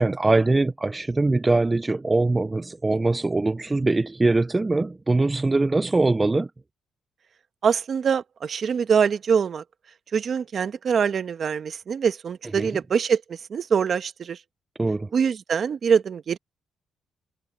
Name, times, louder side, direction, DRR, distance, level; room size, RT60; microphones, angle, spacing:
voice 1, 0.0-6.5 12.6-12.7 14.8-15.1, right 2 dB, 20° right, 0.4 m, -22 dB
voice 2, 7.6-9.6 10.1-14.4 15.1-16.4, right 6 dB, 50° right, 1.2 m, -24 dB
cardioid pair, 90°, 0 cm